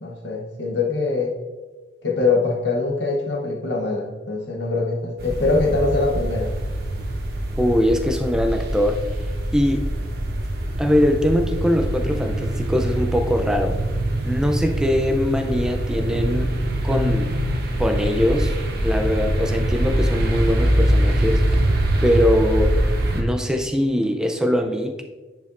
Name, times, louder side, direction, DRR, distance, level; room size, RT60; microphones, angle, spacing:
voice 1, 0.0-1.4 2.0-6.5, left 3 dB, 60° left, 0 dB, 1.0 m, -23 dB
sound 1, 5.2-23.2, right 1 dB, 50° right, 1.1 m, -23 dB
voice 2, 7.6-9.0 9.5-9.8 10.8-13.8 14.2-16.5 16.8-17.3 17.8-18.5 18.8-21.4 22.0-22.8 23.1-25.0, left 1 dB, 5° right, 5 dB, 0.5 m, -22 dB
9.6 x 5.1 x 2.6 m, 1.2 s
head